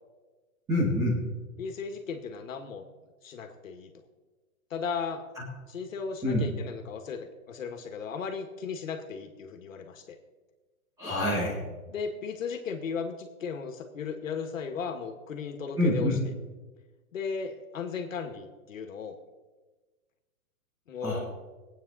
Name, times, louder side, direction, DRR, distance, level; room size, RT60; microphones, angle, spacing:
voice 1, 0.7-1.2 5.4-5.5 6.2-6.5 11.0-11.6 15.8-16.2 21.0-21.2, left 1 dB, 10° right, -6 dB, 2.0 m, -26 dB
voice 2, 1.6-2.9 3.2-3.9 4.7-5.2 5.7-10.2 11.9-16.1 17.1-19.2 20.9-21.3, left 5 dB, 70° left, 5 dB, 2.0 m, -36 dB
22.5 x 9.0 x 4.2 m, 1.3 s
hypercardioid pair, 180°, 41 cm